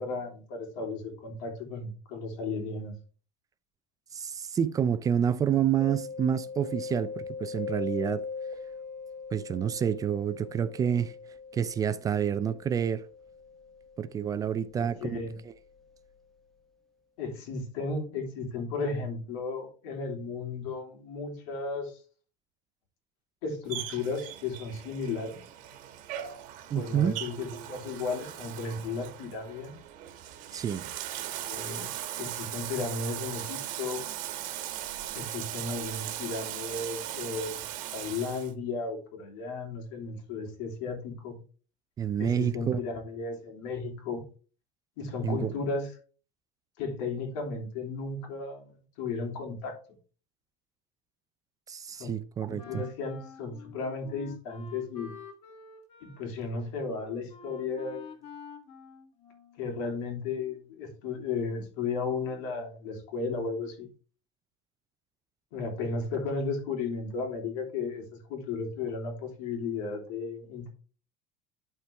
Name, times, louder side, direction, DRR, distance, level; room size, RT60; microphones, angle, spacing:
voice 1, 0.0-2.9 14.8-15.4 17.2-22.0 23.4-25.4 26.7-29.7 31.4-31.9 32.2-34.0 35.1-41.4 42.2-44.2 45.0-45.9 46.8-49.7 52.0-52.2 52.4-55.1 56.0-58.1 59.6-63.9 65.5-70.7, left 4 dB, 85° left, 3.3 m, -34 dB
voice 2, 4.1-8.2 9.3-11.1 11.5-13.1 14.0-15.2 15.5-15.6 26.7-27.2 30.5-30.8 42.0-42.8 45.2-45.5 51.7-52.8, right 8 dB, 20° right, 0.4 m, -28 dB
Mallet percussion, 5.8-15.4, left 5 dB, ahead, 1.1 m, -41 dB
Bathtub (filling or washing), 23.7-38.5, right 12 dB, 55° right, 1.3 m, -39 dB
Wind instrument woodwind instrument, 52.6-59.8, left 5 dB, 40° left, 1.6 m, -48 dB
11.5 x 4.5 x 3.4 m
cardioid pair, 155°, 16 cm